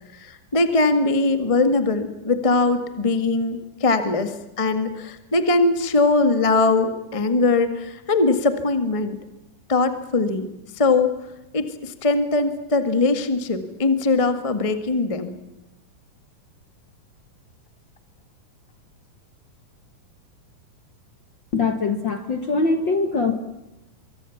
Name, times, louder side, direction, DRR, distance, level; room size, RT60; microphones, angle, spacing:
voice 1, 0.1-9.2 9.7-10.5 10.7-11.1 11.5-15.3, left 3 dB, 30° left, 9 dB, 0.5 m, -21 dB
voice 2, 21.5-23.3, left 3 dB, 50° left, 8 dB, 1.4 m, -22 dB
24.5 x 23.5 x 7.2 m, 0.97 s
omnidirectional pair, 4.3 m